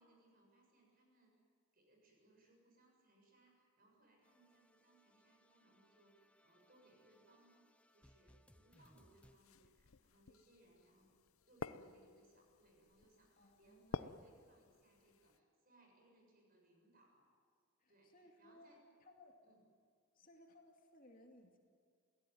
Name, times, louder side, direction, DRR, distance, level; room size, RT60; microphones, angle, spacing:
voice 1, 0.0-1.4 1.7-7.6 7.9-11.1 11.5-17.3 17.9-18.8 19.4-19.6, right 2 dB, 40° right, 1 dB, 7.2 m, -70 dB
sound 1, 4.2-9.4, equal, 5° left, 0.6 m, -70 dB
sound 2, 8.7-15.4, left 4 dB, 80° left, 0.7 m, -52 dB
voice 2, 13.4-14.4 17.8-18.7 19.0-19.4 20.1-21.6, left 1 dB, 40° left, 2 dB, 2.5 m, -64 dB
27.5 x 17.5 x 9.4 m, 2.2 s
head